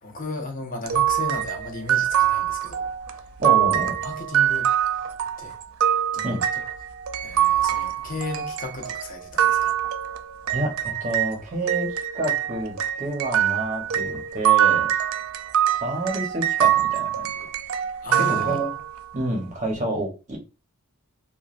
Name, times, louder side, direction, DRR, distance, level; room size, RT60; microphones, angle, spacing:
voice 1, 0.0-3.2 4.0-5.1 5.4-5.6 6.1-6.4 7.2-9.8 18.0-18.7, left 2 dB, 40° left, 0.7 m, -35 dB
sound 1, 0.9-11.3 11.7-19.0, right 10 dB, 75° right, 0.3 m, -24 dB
voice 2, 3.4-3.9 6.2-6.4 10.5-10.7 11.0-14.9 15.7-17.3 18.3-18.7 19.1-20.4, right 2 dB, 35° right, 0.8 m, -28 dB
3.0 x 2.3 x 2.4 m
head